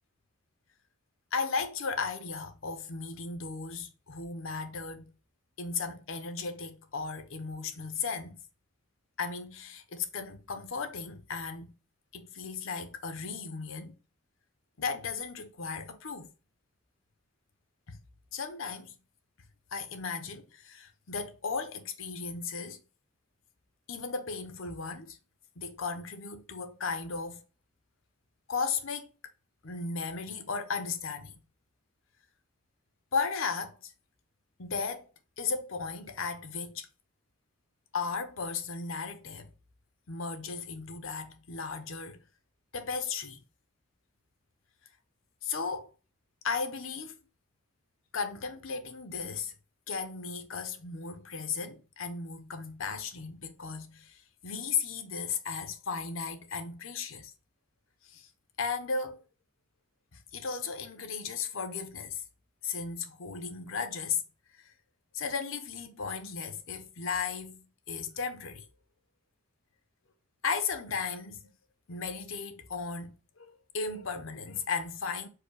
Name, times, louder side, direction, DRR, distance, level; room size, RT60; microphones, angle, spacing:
voice 1, 1.3-5.1 5.6-8.4 9.2-11.7 12.1-14.0 14.8-16.3 17.9-18.0 18.3-19.0 19.7-22.8 23.9-25.2 25.6-27.4 28.5-29.1 29.6-31.4 33.1-33.9 34.6-35.1 35.4-36.9 37.9-39.5 40.1-42.2 42.7-43.4 45.4-45.9 46.4-47.2 48.1-49.5 49.9-57.3 58.0-58.3 58.6-59.2 60.1-62.2 62.6-64.2 64.5-64.7 65.1-68.6 70.4-71.4 71.9-75.3, left 5 dB, 75° left, 0.7 m, -35 dB
4.8 x 2.2 x 4.7 m
head